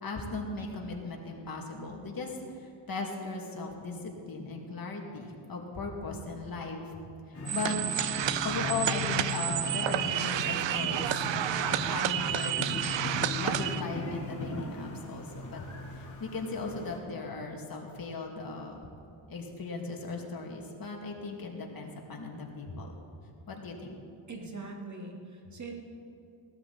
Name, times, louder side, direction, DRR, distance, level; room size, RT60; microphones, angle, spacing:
voice 1, 0.0-7.0 7.3-7.8 8.4-11.2 11.6-12.6 13.4-15.6 15.9-18.9 19.3-22.9 23.5-24.0, left 3 dB, 45° left, 0 dB, 2.4 m, -38 dB
sound 1, 7.3-17.0, left 2 dB, 25° left, 3.8 m, -38 dB
sound 2, 7.5-13.8, right 11 dB, 60° right, 0.7 m, -30 dB
voice 2, 24.3-25.8, right 3 dB, 35° right, 1 dB, 2.2 m, -42 dB
18.0 x 12.5 x 4.2 m, 2.5 s
cardioid pair, 95°, 49 cm